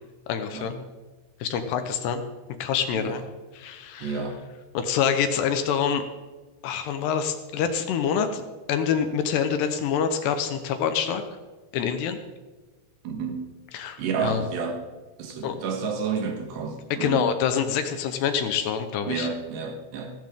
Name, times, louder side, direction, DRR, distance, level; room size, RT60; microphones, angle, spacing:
voice 1, 0.3-0.7 1.4-2.2 2.6-3.2 3.5-4.2 4.7-6.0 6.6-8.4 8.7-11.2 11.7-12.2 13.7-14.5 15.4-15.6 16.9-19.3, left 7 dB, 75° left, 8 dB, 2.8 m, -26 dB
voice 2, 4.0-4.5 13.0-13.5 14.0-14.8 15.2-17.3 19.1-20.1, right 5 dB, 70° right, 4 dB, 3.5 m, -30 dB
15.5 x 15.0 x 3.7 m, 1.2 s
omnidirectional pair, 5.2 m